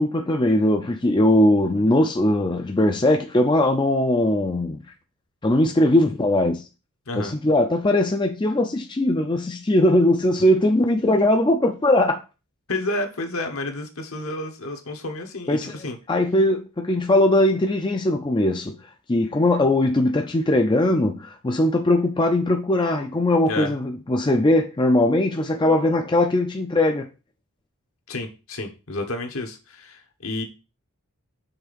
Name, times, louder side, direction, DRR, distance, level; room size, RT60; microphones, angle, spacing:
voice 1, 0.0-4.8 5.4-6.6 7.1-12.2 15.5-15.7 16.1-18.8 19.1-27.1, left 1 dB, 20° left, 0.5 m, -20 dB
voice 2, 7.1-7.4 12.7-16.0 23.5-23.7 28.1-30.4, left 2 dB, 65° left, 1.2 m, -30 dB
5.8 x 3.5 x 5.1 m
head